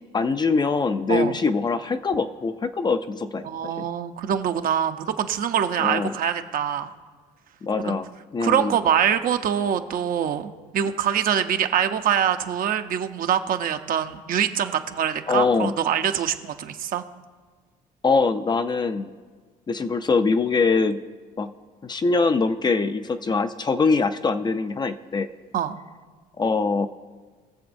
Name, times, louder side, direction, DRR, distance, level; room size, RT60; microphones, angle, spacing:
voice 1, 0.1-3.9 5.8-6.1 7.6-8.7 15.3-15.7 18.0-19.1 19.7-21.0 21.4-21.5 21.8-25.3 26.4-26.9, left 4 dB, 25° left, 9 dB, 0.4 m, -23 dB
voice 2, 3.4-6.9 7.8-7.9 8.4-17.0 25.5-25.7, right 9 dB, 55° right, 8 dB, 0.7 m, -24 dB
21.5 x 7.1 x 2.6 m, 1.5 s
cardioid pair, 110°, 17 cm